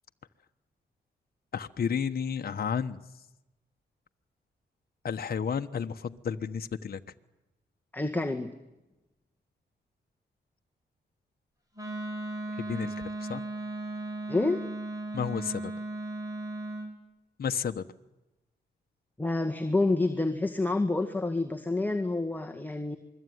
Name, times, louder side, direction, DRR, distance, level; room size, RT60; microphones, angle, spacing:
voice 1, 1.5-3.0 5.0-7.0 12.7-12.9 13.3-13.4 15.1-15.7 17.4-17.8, left 7 dB, 55° left, 7 dB, 1.3 m, -31 dB
voice 2, 7.9-8.5 14.3-14.6 19.2-23.0, left 2 dB, 10° left, 4 dB, 2.0 m, -28 dB
Wind instrument woodwind instrument, 11.7-16.9, right 2 dB, 20° right, 7.7 m, -36 dB
27.5 x 22.0 x 9.5 m, 0.98 s
wide cardioid pair, 110°, 19 cm